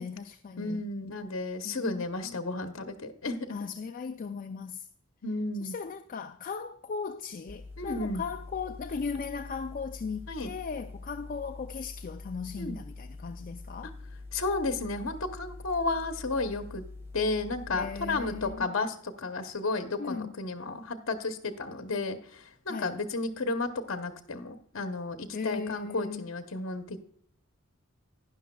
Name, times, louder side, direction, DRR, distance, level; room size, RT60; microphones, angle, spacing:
voice 1, 0.0-0.8 1.6-2.4 3.5-4.9 5.6-14.0 17.7-18.7 20.0-20.3 22.7-22.9 25.3-26.3, left 5 dB, 40° left, 0.4 m, -37 dB
voice 2, 0.6-3.5 5.2-5.7 7.8-8.2 10.3-10.5 12.6-12.8 14.3-16.8 17.1-27.0, left 3 dB, 65° left, 0.9 m, -33 dB
sound 1, 7.5-18.5, left 3 dB, 10° right, 0.8 m, -45 dB
12.0 x 10.5 x 2.3 m
head